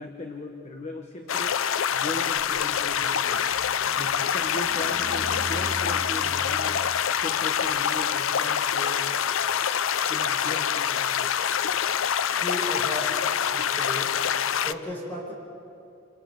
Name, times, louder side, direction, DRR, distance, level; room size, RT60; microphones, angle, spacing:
voice 1, 0.0-1.6 1.9-3.5 3.8-9.1 10.1-11.3, left 1 dB, 35° left, 2 dB, 1.4 m, -38 dB
sound 1, 1.3-14.7, left 8 dB, 80° left, 0.5 m, -26 dB
sound 2, 2.3-9.4, right 1 dB, 50° right, 1.4 m, -42 dB
voice 2, 12.4-13.2 13.5-14.1 14.6-15.3, left 1 dB, 10° left, -5 dB, 6.9 m, -35 dB
29.0 x 28.5 x 4.0 m, 2.6 s
head